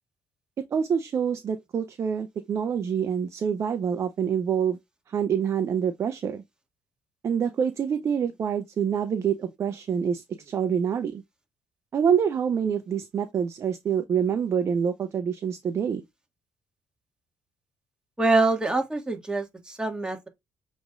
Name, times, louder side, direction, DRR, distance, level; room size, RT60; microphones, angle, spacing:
voice 1, 0.7-4.8 5.1-6.4 7.2-11.2 11.9-16.0, right 7 dB, 50° right, 0.6 m, -26 dB
voice 2, 18.2-20.3, right 2 dB, 15° right, 1.8 m, -25 dB
6.8 x 3.1 x 2.5 m
supercardioid pair, 55°, 6 cm